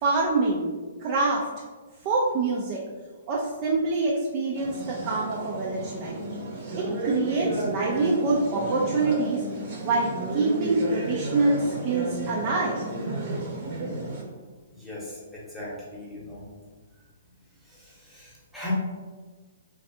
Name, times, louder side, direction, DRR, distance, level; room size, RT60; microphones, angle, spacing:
voice 1, 0.0-0.7 1.0-1.5 2.0-2.8 3.3-6.2 6.7-9.4 9.8-12.8, right 3 dB, 40° right, -3 dB, 0.4 m, -25 dB
sound 1, 4.6-14.2, right 2 dB, 55° right, 0.8 m, -32 dB
voice 2, 14.8-16.5 18.1-18.7, left 1 dB, ahead, -7 dB, 1.0 m, -39 dB
3.3 x 2.4 x 2.7 m, 1.4 s
hypercardioid pair, 135°, 0 cm